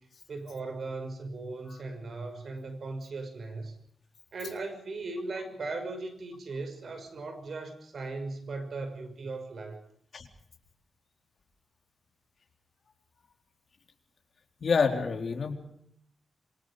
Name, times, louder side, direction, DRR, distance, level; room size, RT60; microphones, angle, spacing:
voice 1, 0.3-3.7 4.3-9.8, right 3 dB, 55° right, 7 dB, 6.1 m, -38 dB
voice 2, 14.6-15.5, left 5 dB, 55° left, 4 dB, 4.0 m, -27 dB
27.0 x 24.5 x 5.1 m, 0.69 s
wide cardioid pair, 130°, 0 cm